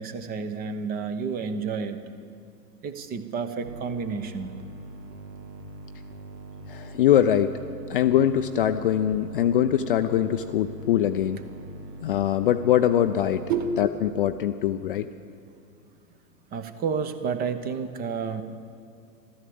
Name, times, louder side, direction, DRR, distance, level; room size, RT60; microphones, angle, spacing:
voice 1, 0.0-2.1 2.8-4.5 13.5-13.7 16.5-18.4, right 6 dB, 20° right, 10 dB, 0.7 m, -30 dB
sound 1, 3.6-13.9, right 2 dB, 85° right, 1.5 m, -42 dB
voice 2, 6.7-7.5 7.9-11.4 12.0-13.4 13.8-15.1, left 10 dB, 35° left, 9 dB, 0.4 m, -22 dB
14.0 x 13.0 x 7.8 m, 2.3 s
figure-of-eight pair, 110°, 49 cm